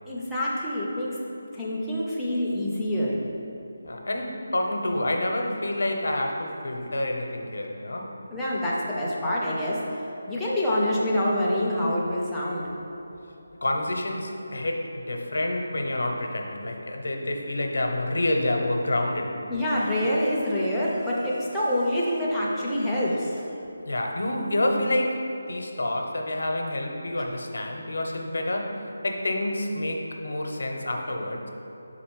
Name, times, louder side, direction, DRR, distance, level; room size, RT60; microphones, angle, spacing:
voice 1, 0.1-3.2 8.3-12.6 19.5-23.5, left 1 dB, ahead, -9 dB, 0.4 m, -26 dB
voice 2, 3.8-8.1 13.6-19.4 23.8-31.5, left 1 dB, 70° left, 2 dB, 0.7 m, -28 dB
5.2 x 4.2 x 4.6 m, 3.0 s
figure-of-eight pair, 180°, 0 cm